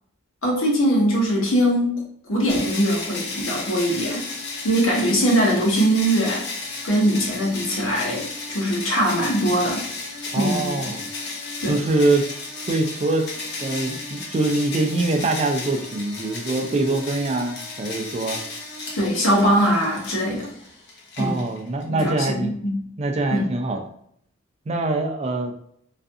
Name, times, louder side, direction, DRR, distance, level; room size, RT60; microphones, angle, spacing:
voice 1, 0.4-4.2 4.6-6.5 6.8-9.8 10.3-10.9 11.6-11.8 19.0-20.5 21.2-21.4 21.9-22.8 23.3-23.4, equal, 85° left, -2 dB, 0.9 m, -21 dB
sound 1, 2.5-21.8, left 3 dB, 55° left, 0.6 m, -34 dB
voice 2, 10.3-11.0 11.7-12.3 12.7-13.3 13.6-18.4 21.2-22.5 23.0-23.8 24.7-25.5, right 2 dB, 30° right, 4 dB, 0.3 m, -24 dB
2.4 x 2.4 x 2.6 m, 0.67 s
head